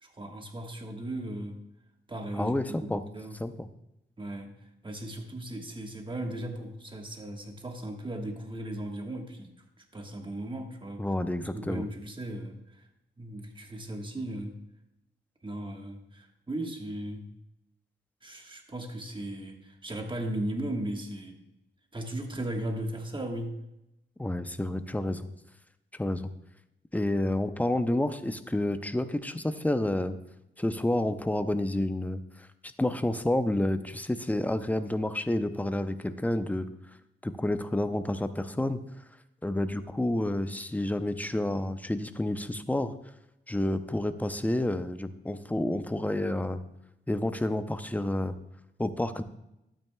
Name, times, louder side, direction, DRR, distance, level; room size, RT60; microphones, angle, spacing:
voice 1, 0.0-1.6 2.1-3.4 4.2-4.6 4.8-9.5 9.8-11.1 11.5-12.9 13.2-14.6 15.4-17.3 18.2-21.4 21.9-23.6, right 1 dB, 25° right, 3 dB, 1.3 m, -37 dB
voice 2, 2.4-3.0 3.4-3.7 11.0-11.8 24.2-25.3 26.0-26.3 26.9-30.2 30.6-36.7 37.2-38.8 39.4-42.9 43.5-46.6 47.1-48.3 48.8-49.2, left 1 dB, 10° left, 10 dB, 0.5 m, -29 dB
12.0 x 8.8 x 2.2 m, 0.87 s
cardioid pair, 85°, 20 cm